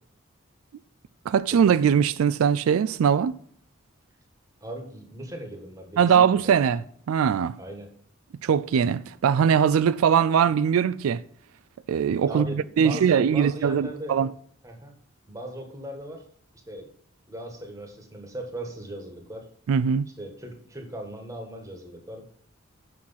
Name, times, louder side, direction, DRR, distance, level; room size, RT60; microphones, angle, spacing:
voice 1, 1.3-3.3 6.0-7.6 8.4-11.2 11.9-14.3 19.7-20.1, right 7 dB, 90° right, 0.3 m, -21 dB
voice 2, 4.6-6.5 7.6-7.9 12.3-14.2 14.6-14.9 15.3-16.2 16.7-16.9 17.3-19.5 20.2-22.3, right 1 dB, 15° right, 1.5 m, -38 dB
6.5 x 6.1 x 5.6 m
head